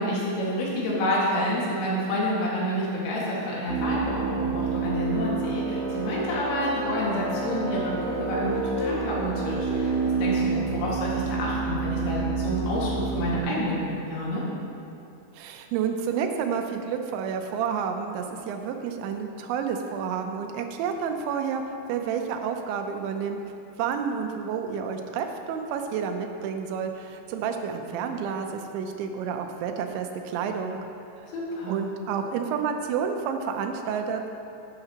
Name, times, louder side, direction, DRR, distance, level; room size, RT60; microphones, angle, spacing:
voice 1, 0.0-9.9 10.2-14.4 31.3-31.8, equal, 85° left, -6 dB, 4.3 m, -28 dB
sound 1, 3.7-13.4, right 4 dB, 65° right, 3.0 m, -28 dB
voice 2, 15.4-21.6 21.9-23.4 23.8-30.8 31.7-34.3, right 7 dB, 90° right, 5 dB, 3.1 m, -30 dB
12.5 x 10.0 x 2.9 m, 2.7 s
omnidirectional pair, 5.1 m